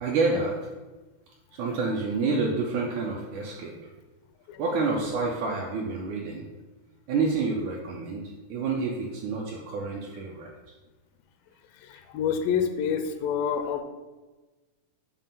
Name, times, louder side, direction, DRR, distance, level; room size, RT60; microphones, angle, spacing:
voice 1, 0.0-0.6 1.5-3.7 4.6-6.4 7.1-10.5, right 4 dB, 80° right, -1 dB, 1.8 m, -28 dB
voice 2, 11.8-13.8, left 7 dB, 85° left, 6 dB, 2.2 m, -28 dB
7.3 x 2.4 x 5.3 m, 1.2 s
omnidirectional pair, 3.9 m